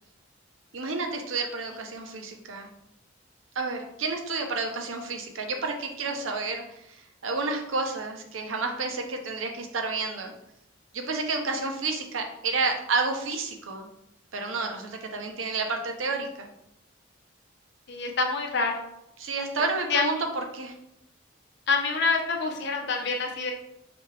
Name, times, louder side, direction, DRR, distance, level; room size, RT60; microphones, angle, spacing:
voice 1, 0.7-2.7 3.5-10.3 10.9-13.9 14.3-16.5 19.2-20.7, right 3 dB, 90° right, 3 dB, 0.7 m, -30 dB
voice 2, 17.9-18.8 19.9-20.0 21.7-23.5, left 4 dB, 60° left, 3 dB, 0.7 m, -26 dB
5.1 x 2.8 x 3.3 m, 0.81 s
head